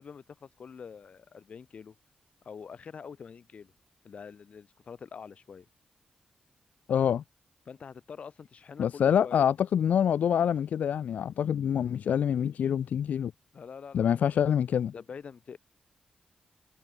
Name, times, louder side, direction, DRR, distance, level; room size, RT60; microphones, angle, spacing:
voice 1, 0.0-1.9 2.4-3.7 4.0-5.7 7.7-9.5 13.5-14.3 14.9-15.6, left 6 dB, 50° left, 6.8 m, -45 dB
voice 2, 6.9-7.2 8.8-13.3 13.9-14.9, left 8 dB, 80° left, 0.4 m, -26 dB
wide cardioid pair, 170°, 3 cm